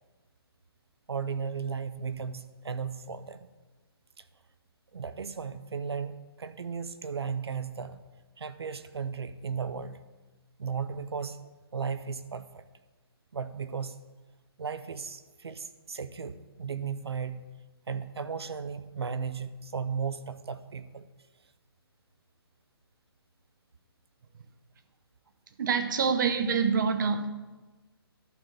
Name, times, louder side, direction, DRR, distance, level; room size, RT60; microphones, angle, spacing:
voice 1, 1.1-3.5 4.9-8.0 8.4-10.0 10.6-11.4 11.7-12.6 13.3-14.0 14.6-17.5 17.9-21.0, right 6 dB, 80° right, 0.7 m, -35 dB
voice 2, 25.6-27.3, right 6 dB, 50° right, 0.9 m, -26 dB
11.0 x 4.4 x 7.2 m
hypercardioid pair, 150°, 13 cm